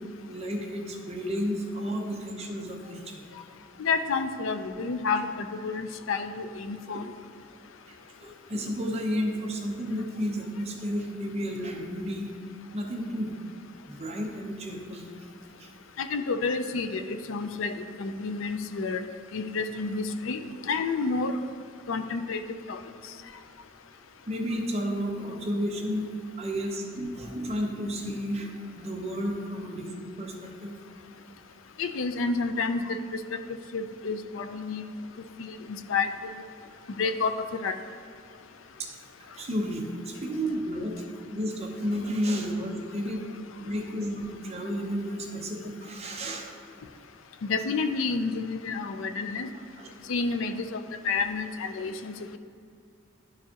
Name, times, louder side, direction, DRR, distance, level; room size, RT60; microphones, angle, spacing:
voice 1, 0.3-3.2 6.9-7.0 7.9-12.3 12.7-13.3 13.8-15.1 15.6-15.7 24.3-26.1 26.4-30.7 38.8-38.9 39.2-41.0 41.3-43.2 43.6-46.5 49.8-50.0, equal, 35° right, 0 dB, 0.8 m, -32 dB
voice 2, 3.8-7.0 16.0-19.0 19.3-21.4 21.9-22.4 22.7-22.8 31.8-33.0 33.3-33.4 33.7-34.8 35.4-36.1 37.0-37.7 47.4-49.5 50.1-52.4, left 4 dB, 85° left, 9 dB, 0.4 m, -30 dB
11.0 x 4.7 x 2.9 m, 2.3 s
head